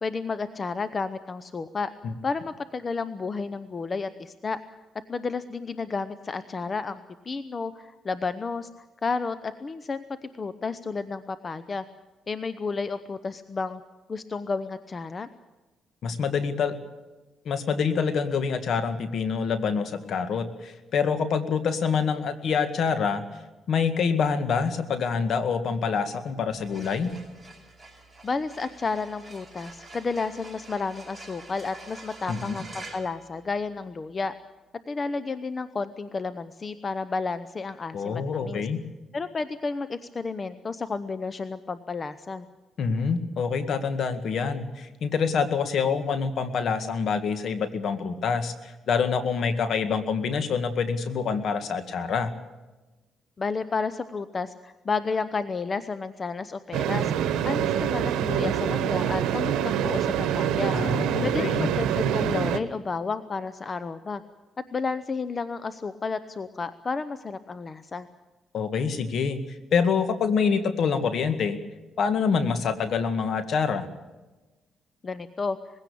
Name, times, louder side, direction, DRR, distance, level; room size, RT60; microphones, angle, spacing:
voice 1, 0.0-1.9 2.2-4.6 5.1-8.7 9.0-10.0 10.4-11.8 12.3-13.8 14.1-15.3 28.2-34.3 34.9-38.6 39.1-42.5 53.4-60.8 61.2-64.2 64.7-68.1 75.0-75.6, left 4 dB, 35° left, 12 dB, 0.8 m, -31 dB
voice 2, 16.0-16.8 17.5-23.3 23.7-27.1 32.3-32.6 37.9-38.8 42.8-52.3 60.7-61.7 68.5-69.4 69.7-71.6 72.0-73.9, left 6 dB, 65° left, 9 dB, 2.0 m, -26 dB
sound 1, 26.5-34.0, right 2 dB, 5° right, 7.5 m, -47 dB
sound 2, 56.7-62.6, right 9 dB, 85° right, 1.1 m, -25 dB
21.0 x 16.5 x 8.6 m, 1.1 s
cardioid pair, 90°, 0 cm